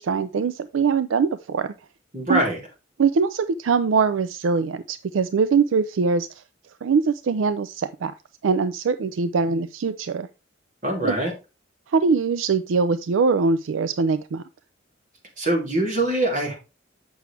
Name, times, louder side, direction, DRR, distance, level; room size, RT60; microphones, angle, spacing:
voice 1, 0.0-1.7 2.3-2.4 3.0-6.3 6.8-8.1 8.4-10.3 11.0-11.2 11.9-14.4, right 5 dB, 80° right, 0.4 m, -22 dB
voice 2, 2.1-2.6 10.8-11.3 15.4-16.5, right 1 dB, 45° right, 3.1 m, -23 dB
8.2 x 6.2 x 3.3 m
head